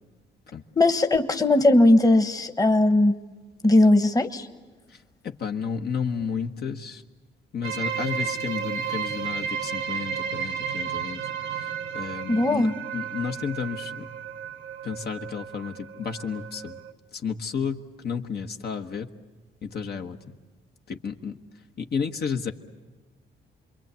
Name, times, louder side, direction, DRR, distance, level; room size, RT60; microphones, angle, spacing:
voice 1, 0.8-3.1 3.6-4.5 12.3-12.7, left 2 dB, 20° left, 8 dB, 1.2 m, -19 dB
voice 2, 5.2-7.0 7.5-11.2 11.6-11.7 11.9-12.7 12.9-14.1 14.8-16.8 17.2-19.1 19.6-20.3 20.9-21.4 21.8-22.5, left 6 dB, 55° left, 4 dB, 1.3 m, -32 dB
sound 1, 7.6-16.9, right 7 dB, 75° right, 1.0 m, -33 dB
27.0 x 22.5 x 8.2 m, 1.3 s
cardioid pair, 90°, 20 cm